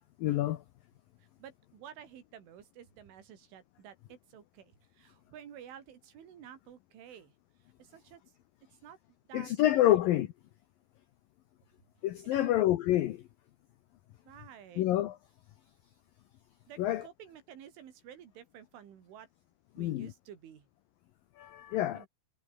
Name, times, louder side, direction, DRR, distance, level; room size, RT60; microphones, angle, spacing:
voice 1, 0.2-0.6 9.3-10.3 12.0-13.2 14.8-15.2 16.8-17.1 19.8-20.1 21.4-22.1, left 14 dB, 85° left, 2.0 m, -27 dB
voice 2, 1.4-7.3 7.8-8.2 8.8-9.0 9.3-9.5 9.8-10.0 12.2-12.5 14.3-14.9 16.7-19.3 19.8-20.7 21.9-22.1, right 9 dB, 85° right, 5.5 m, -51 dB
omnidirectional pair, 5.4 m